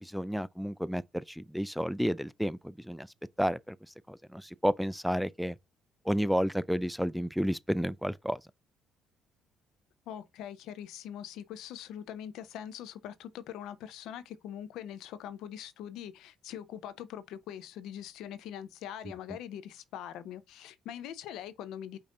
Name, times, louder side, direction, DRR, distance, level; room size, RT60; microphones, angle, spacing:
voice 1, 0.0-3.1 3.4-3.8 4.1-5.6 6.1-8.4, equal, ahead, 0.3 m, -31 dB
voice 2, 10.1-22.0, left 10 dB, 80° left, 0.6 m, -42 dB
5.3 x 2.6 x 3.7 m
supercardioid pair, 75°, 0 cm